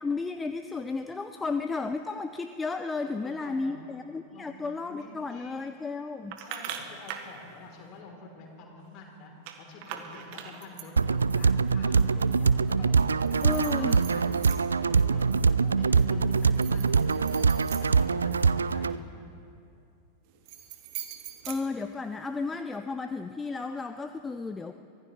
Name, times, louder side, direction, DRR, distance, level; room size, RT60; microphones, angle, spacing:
voice 1, 0.0-6.4 13.4-14.0 16.1-16.3 21.5-24.7, left 4 dB, 15° left, 8 dB, 0.5 m, -33 dB
voice 2, 3.0-3.8 4.3-4.6 4.9-5.6 6.4-9.3 9.6-12.9 13.3-14.3 14.8-19.0, left 3 dB, 40° left, 0 dB, 3.5 m, -47 dB
sound 1, 6.3-7.3 9.5-11.0 13.3-14.9 15.2-15.7 16.4-18.7 20.3-22.4, right 10 dB, 45° right, 1.2 m, -42 dB
sound 2, 11.0-19.0, right 5 dB, 75° right, 0.3 m, -24 dB
24.0 x 16.0 x 3.2 m, 2.6 s
figure-of-eight pair, 90°, 0 cm